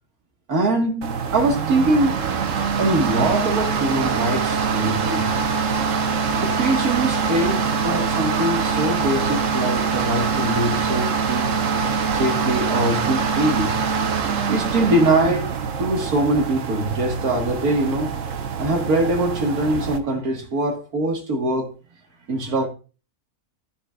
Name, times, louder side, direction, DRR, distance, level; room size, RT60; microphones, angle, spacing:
voice 1, 0.5-2.2 2.8-5.3 6.4-11.5 12.1-13.8 14.5-15.5 15.8-18.1 18.6-21.7 22.3-22.7, right 1 dB, 85° right, 2.3 m, -23 dB
sound 1, 1.0-20.0, right 5 dB, 65° right, 1.3 m, -24 dB
13.0 x 7.0 x 2.5 m
omnidirectional pair, 1.5 m